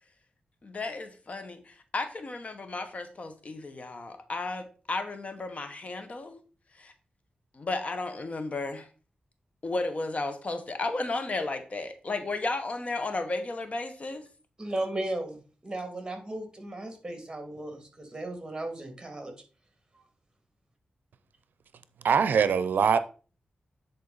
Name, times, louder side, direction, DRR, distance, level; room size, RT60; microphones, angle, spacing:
voice 1, 0.6-6.4 6.8-6.9 7.5-8.9 9.6-14.2, left 2 dB, 45° left, 1.1 m, -33 dB
voice 2, 14.6-19.3, right 1 dB, 20° right, 2.3 m, -36 dB
voice 3, 22.0-23.0, right 6 dB, 90° right, 0.5 m, -22 dB
9.6 x 4.2 x 4.0 m
wide cardioid pair, 85°, 3 cm